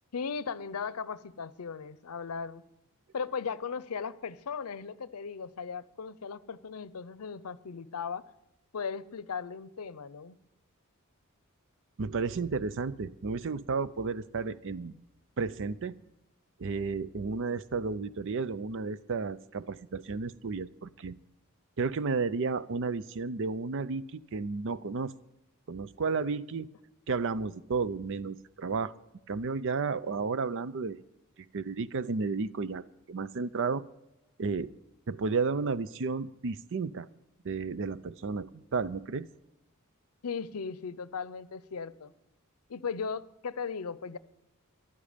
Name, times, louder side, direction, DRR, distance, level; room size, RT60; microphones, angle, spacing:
voice 1, 0.1-2.6 3.1-8.3 8.7-10.4 40.2-42.1 42.7-44.2, left 5 dB, 85° left, 17 dB, 0.6 m, -37 dB
voice 2, 12.0-14.9 15.4-15.9 16.6-21.1 21.8-25.1 25.7-26.7 27.1-28.9 29.3-31.0 31.5-33.8 34.4-34.7 35.1-37.1 37.4-39.3, right 4 dB, 60° right, 16 dB, 0.5 m, -32 dB
15.0 x 11.5 x 5.1 m, 0.86 s
head